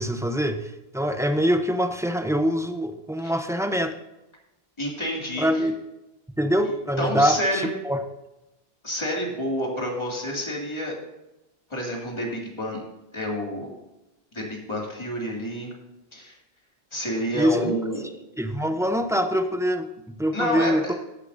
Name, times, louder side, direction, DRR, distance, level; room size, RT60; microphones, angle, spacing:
voice 1, 0.0-3.9 5.4-5.7 6.4-8.0 17.3-17.8 18.4-20.9, equal, 5° right, 7 dB, 0.5 m, -24 dB
voice 2, 4.8-5.6 7.0-7.7 8.8-10.9 11.7-12.8 13.1-13.7 14.3-15.7 16.1-16.3 16.9-18.1 20.3-20.9, equal, 30° left, -2 dB, 2.3 m, -29 dB
15.5 x 8.3 x 2.6 m, 0.96 s
omnidirectional pair, 1.0 m